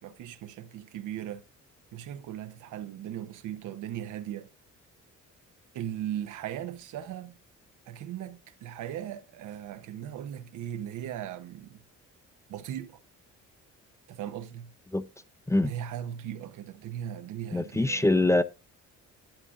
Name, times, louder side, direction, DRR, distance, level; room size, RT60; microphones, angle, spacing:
voice 1, 0.0-1.4 1.9-4.5 5.7-7.4 7.9-11.8 12.5-13.0 14.1-14.7 15.6-18.2, right 11 dB, 85° right, 0.9 m, -38 dB
voice 2, 17.5-18.4, left 2 dB, 10° left, 0.5 m, -23 dB
12.0 x 8.3 x 2.5 m
cardioid pair, 90°, 30 cm